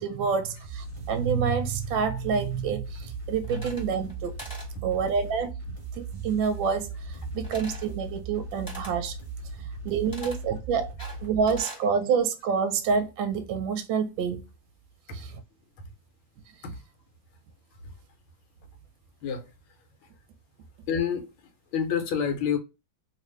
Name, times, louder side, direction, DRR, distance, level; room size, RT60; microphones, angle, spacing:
voice 1, 0.0-4.3 4.8-5.5 6.0-9.1 9.8-10.9 11.2-14.4 15.1-15.3, right 6 dB, 75° right, 1.2 m, -27 dB
sound 1, 0.6-11.6, right 3 dB, 30° right, 1.1 m, -38 dB
sound 2, 3.4-4.1 4.4-4.7 7.4-7.9 8.7-9.0 10.1-10.4 11.0-11.9, right 1 dB, 15° left, 1.0 m, -43 dB
voice 2, 7.3-7.6 9.6-9.7 10.2-10.3 15.1-15.2 16.6-16.8 17.8-17.9 19.2-19.4 20.0-20.1 20.9-21.3 21.7-22.6, left 7 dB, 75° left, 1.6 m, -29 dB
3.3 x 2.5 x 3.1 m
omnidirectional pair, 2.2 m